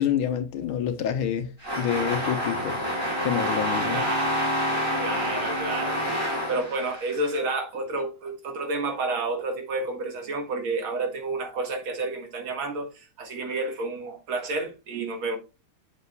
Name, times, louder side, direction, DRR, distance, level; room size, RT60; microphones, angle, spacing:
voice 1, 0.0-1.5 1.8-2.8 3.2-4.0, left 9 dB, 80° left, 1.7 m, -27 dB
sound 1, 1.6-7.4, equal, 15° right, 4.1 m, -28 dB
voice 2, 3.9-4.3 5.0-6.0 6.5-15.4, right 2 dB, 70° right, 2.5 m, -30 dB
8.1 x 7.3 x 2.3 m
omnidirectional pair, 2.3 m